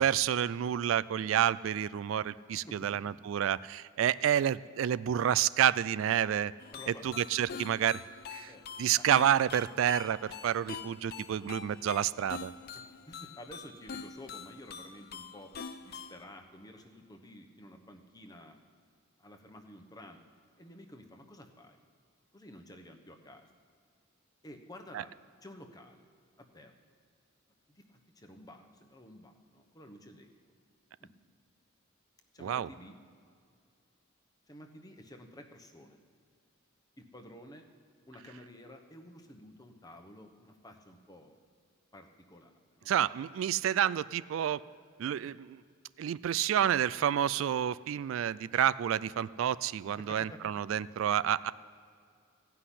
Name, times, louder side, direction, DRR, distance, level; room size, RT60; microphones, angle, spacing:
voice 1, 0.0-6.5 6.9-8.0 8.3-8.5 8.8-12.5 24.9-25.0 32.4-32.7 42.9-44.6 45.0-45.6 46.0-51.5, right 10 dB, 70° right, 18 dB, 0.3 m, -29 dB
sound 1, 6.6-16.2, left 5 dB, 50° left, 0.5 m, -45 dB
voice 2, 6.7-7.2 8.5-8.6 9.0-9.1 10.2-10.4 13.1-15.5 15.8-18.6 19.2-20.2 20.6-21.8 22.3-23.4 24.4-25.1 25.4-26.1 26.4-26.7 27.7-30.3 31.0-31.1 32.3-33.0 34.5-36.0 37.0-37.6 38.1-41.4 41.9-42.9 45.2-45.3 50.0-50.4, left 1 dB, 20° left, 5 dB, 1.0 m, -51 dB
15.0 x 5.8 x 9.9 m, 2.3 s
head